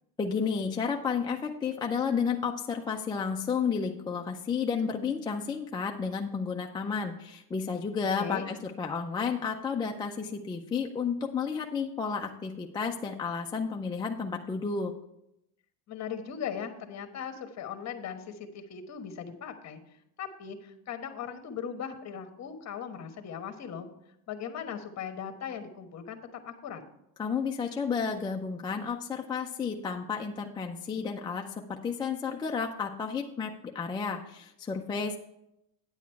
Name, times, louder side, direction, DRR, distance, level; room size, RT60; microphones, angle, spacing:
voice 1, 0.2-14.9 27.2-31.4 31.7-35.2, left 5 dB, 10° left, 1 dB, 0.3 m, -32 dB
voice 2, 8.2-8.5 15.9-19.8 20.2-23.9 24.3-26.8, left 7 dB, 35° left, 7 dB, 1.2 m, -39 dB
9.4 x 7.2 x 4.5 m, 0.82 s
supercardioid pair, 125°, 45 cm